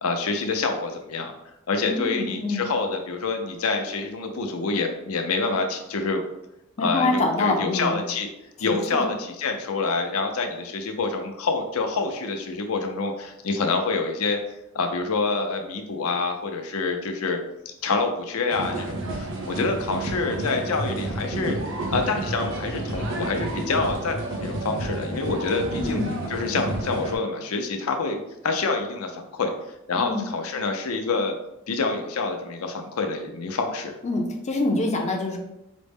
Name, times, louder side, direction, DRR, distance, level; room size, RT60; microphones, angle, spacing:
voice 1, 0.0-1.3 1.7-6.2 6.8-8.3 8.6-17.4 17.8-21.6 21.9-29.5 29.9-31.3 31.7-33.9, left 3 dB, 85° left, 4 dB, 0.5 m, -27 dB
voice 2, 1.8-2.6 6.8-8.0 8.7-9.1 25.8-26.2 30.0-30.3 34.0-35.4, left 2 dB, 30° left, 2 dB, 0.4 m, -25 dB
sound 1, 18.5-27.2, right 2 dB, 60° right, 0.8 m, -30 dB
5.0 x 2.0 x 3.4 m, 0.87 s
head